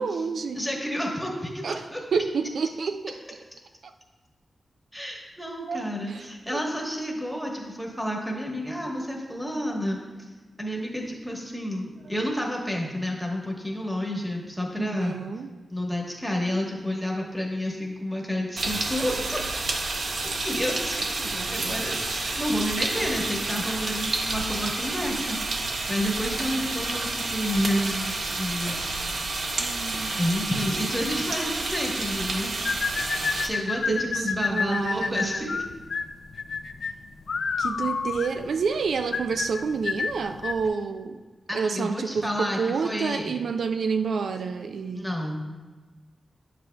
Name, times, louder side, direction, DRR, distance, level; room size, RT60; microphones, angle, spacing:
voice 1, 0.0-0.6 1.6-1.8 2.1-3.2 3.8-3.9 5.7-6.6 14.8-15.5 21.2-21.8 29.6-30.2 33.9-35.6 37.6-41.2 41.5-45.1, right 5 dB, 80° right, 8 dB, 0.3 m, -29 dB
voice 2, 0.5-2.0 4.9-10.0 10.6-15.1 15.7-19.4 20.4-28.8 30.2-32.5 33.4-35.6 41.5-43.4 44.9-45.4, equal, ahead, -1 dB, 1.1 m, -30 dB
sound 1, 18.6-33.5, right 3 dB, 60° right, 0.7 m, -30 dB
sound 2, 32.6-40.7, left 5 dB, 65° left, 0.3 m, -29 dB
10.0 x 7.5 x 2.2 m, 1.3 s
wide cardioid pair, 150°, 0 cm